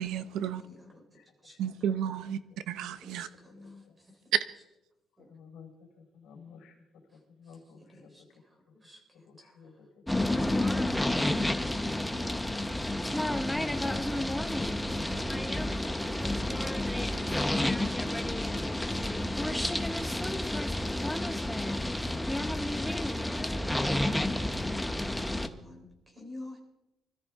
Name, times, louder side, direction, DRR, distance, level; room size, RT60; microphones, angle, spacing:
voice 1, 0.0-0.6 1.6-2.4 2.7-3.3, right 9 dB, 90° right, 13 dB, 0.9 m, -32 dB
voice 2, 0.6-1.6 3.0-4.2 5.2-5.3 7.8-9.0 9.4-9.5 11.6-11.9 18.2-18.5 18.9-19.1 24.1-26.6, left 1 dB, 15° right, 1 dB, 3.8 m, -51 dB
voice 3, 1.1-1.6 3.5-3.9 5.3-5.7 6.0-6.7 7.4-8.1 9.2-9.9 11.8-12.3 13.6-15.4 21.7-22.6, left 5 dB, 85° left, 1 dB, 4.1 m, -53 dB
sound 1, 10.1-25.5, left 1 dB, 5° left, 0.8 m, -30 dB
25.0 x 13.5 x 3.6 m, 0.91 s
cardioid pair, 150°, 0 cm